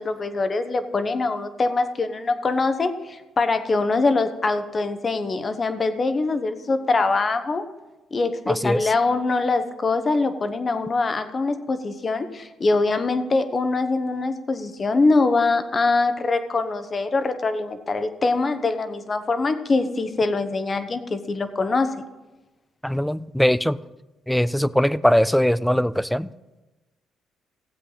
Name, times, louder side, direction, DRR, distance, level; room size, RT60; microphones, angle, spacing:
voice 1, 0.0-7.6 8.1-21.9, left 3 dB, 35° left, 10 dB, 0.9 m, -23 dB
voice 2, 8.5-8.8 22.8-23.8 24.3-26.3, equal, 5° left, 18 dB, 0.3 m, -21 dB
15.5 x 7.8 x 4.0 m, 1.1 s
cardioid pair, 90°, 0 cm